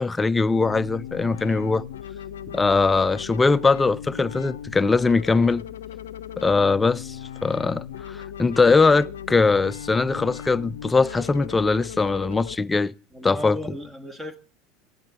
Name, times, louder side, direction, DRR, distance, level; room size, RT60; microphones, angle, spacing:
voice 1, 0.0-1.8 2.5-5.6 6.4-7.2 7.4-12.9 13.2-13.6, left 4 dB, 15° left, 0.5 m, -21 dB
sound 1, 0.5-12.5, left 9 dB, 80° left, 0.5 m, -38 dB
voice 2, 13.1-14.4, left 1 dB, 10° right, 1.5 m, -35 dB
17.0 x 10.5 x 3.8 m
hypercardioid pair, 80°, 0 cm